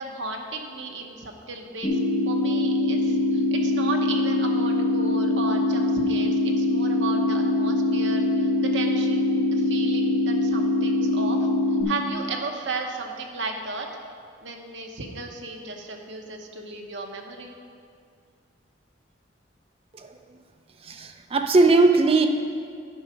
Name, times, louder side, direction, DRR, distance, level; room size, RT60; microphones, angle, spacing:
voice 1, 0.0-1.9 2.3-11.5 11.9-13.9 14.4-17.5, right 3 dB, 70° right, 2 dB, 1.0 m, -35 dB
sound 1, 1.8-11.8, left 2 dB, 25° left, 1.3 m, -23 dB
voice 2, 20.9-22.3, right 3 dB, 30° right, 6 dB, 0.5 m, -18 dB
10.0 x 5.7 x 5.1 m, 2.2 s
head